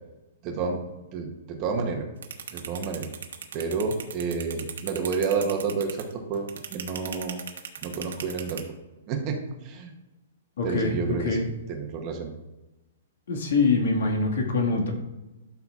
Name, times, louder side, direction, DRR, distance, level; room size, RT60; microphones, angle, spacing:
voice 1, 0.4-2.1 2.5-3.1 3.5-7.4 7.8-8.6 9.1-9.9 10.6-12.3, right 5 dB, 25° right, 3 dB, 0.9 m, -30 dB
sound 1, 2.2-8.6, right 8 dB, 85° right, 1.1 m, -36 dB
voice 2, 10.6-11.4 13.3-14.9, left 3 dB, 70° left, 2 dB, 1.8 m, -24 dB
12.0 x 5.7 x 2.4 m, 1.1 s
hypercardioid pair, 175°, 0 cm